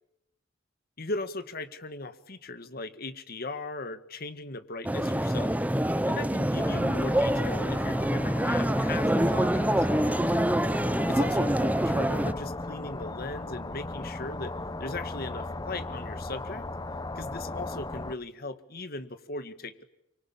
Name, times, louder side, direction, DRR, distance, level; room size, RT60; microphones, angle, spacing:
voice 1, 1.0-5.5 6.1-9.9 11.1-16.7 17.2-19.9, left 2 dB, 50° left, 11 dB, 1.9 m, -38 dB
sound 1, 4.8-12.3, right 1 dB, 10° right, 0.9 m, -26 dB
sound 2, 6.6-18.2, left 2 dB, 20° left, 0.9 m, -37 dB
25.0 x 25.0 x 8.5 m, 0.87 s
head